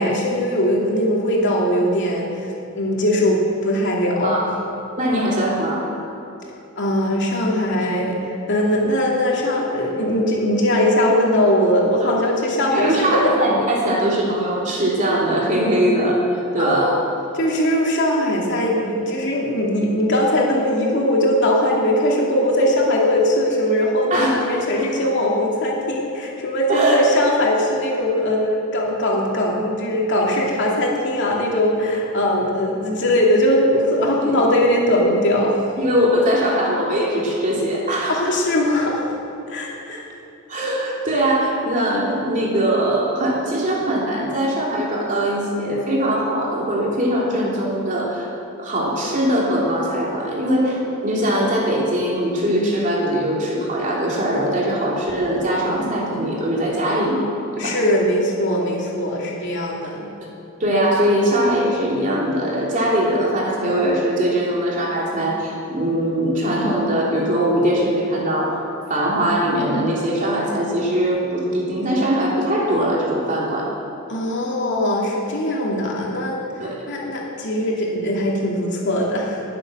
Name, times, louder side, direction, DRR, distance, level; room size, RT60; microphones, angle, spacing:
voice 1, 0.0-2.3 2.7-4.5 6.8-8.2 8.5-13.3 16.6-17.1 17.3-35.6 38.1-39.1 39.5-40.0 57.6-60.1 74.1-76.5 76.9-79.4, left 1 dB, 60° left, -2 dB, 2.7 m, -20 dB
voice 2, 5.0-6.0 12.7-16.2 16.5-17.0 24.1-24.4 26.7-27.0 34.2-34.3 35.8-38.2 40.5-48.3 48.6-57.2 57.5-57.8 60.6-68.6 68.9-73.7 76.6-76.8, right 1 dB, 40° right, -4 dB, 3.2 m, -21 dB
20.5 x 7.8 x 6.3 m, 2.8 s
head